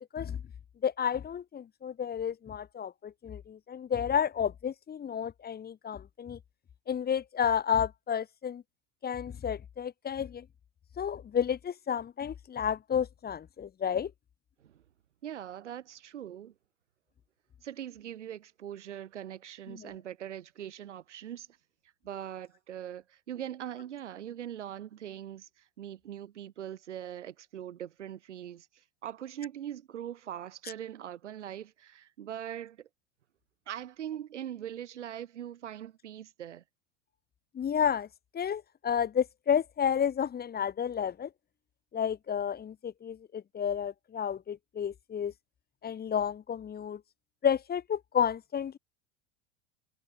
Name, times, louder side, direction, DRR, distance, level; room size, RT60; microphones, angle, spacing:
voice 1, 0.8-6.4 6.9-8.6 9.0-10.5 11.0-14.1 19.7-19.9 37.5-38.1 38.3-41.3 41.9-45.3 45.8-47.0 47.4-48.8, left 8 dB, 25° left, 1.8 m, -31 dB
voice 2, 15.2-16.5 17.6-21.5 22.0-32.9 33.7-36.6, right 10 dB, 80° right, 4.1 m, -41 dB
hypercardioid pair, 80°, 35 cm